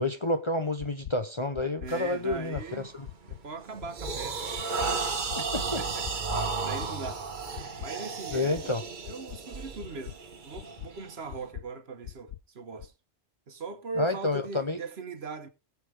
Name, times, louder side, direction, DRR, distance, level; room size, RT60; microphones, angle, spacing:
voice 1, 0.0-2.6 3.0-3.1 5.5-5.8 8.3-8.8 14.0-14.8, left 2 dB, 30° left, 0.7 m, -29 dB
sound 1, 0.8-1.1 1.5-1.9 2.3-2.6 3.0-3.4 3.8-4.1 4.5-4.9 5.3-5.6 6.0-6.4 6.8-7.1 7.5-7.9 8.3-8.6 9.0-9.4 9.8-10.1 10.5-10.9 11.3-11.6 12.0-12.4 12.8-12.9, left 12 dB, 80° left, 1.0 m, -41 dB
voice 2, 1.8-2.9 3.2-4.7 5.0-7.2 7.8-12.9 13.5-15.5, right 4 dB, 65° right, 1.4 m, -40 dB
sound 2, 1.9-2.1 2.6-2.9 3.4-11.5, right 4 dB, 45° right, 1.3 m, -34 dB
20.0 x 7.2 x 3.4 m
omnidirectional pair, 1.2 m